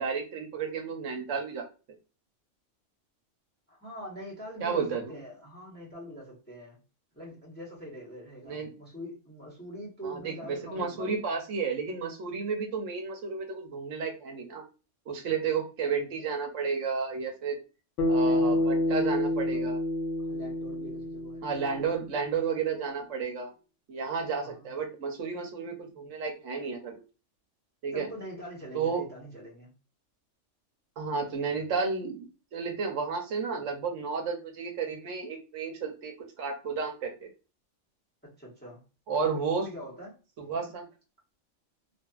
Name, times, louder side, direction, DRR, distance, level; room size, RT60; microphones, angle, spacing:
voice 1, 0.0-1.7 4.6-5.0 8.5-8.7 10.0-14.6 15.1-17.6 18.1-19.8 21.4-23.5 23.9-26.9 27.8-28.1 28.7-29.0 31.0-37.3 39.1-39.7 40.4-40.9, right 5 dB, 80° right, 1.0 m, -32 dB
voice 2, 3.7-6.8 7.1-11.2 18.2-19.7 20.2-21.5 24.4-24.7 27.9-29.7 38.2-38.8 39.1-40.2, equal, 10° left, 1.1 m, -44 dB
Bass guitar, 18.0-22.4, left 1 dB, 75° left, 1.0 m, -28 dB
2.6 x 2.5 x 2.3 m
omnidirectional pair, 1.3 m